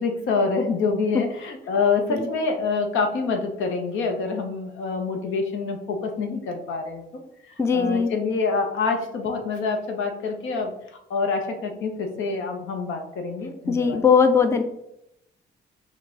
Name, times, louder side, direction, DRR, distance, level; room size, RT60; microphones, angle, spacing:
voice 1, 0.0-10.7 11.1-14.0, left 4 dB, 80° left, 4 dB, 0.8 m, -26 dB
voice 2, 7.6-8.1 13.7-14.6, left 6 dB, 15° left, 8 dB, 0.4 m, -19 dB
4.5 x 2.3 x 3.8 m, 0.80 s
cardioid pair, 90°, 20 cm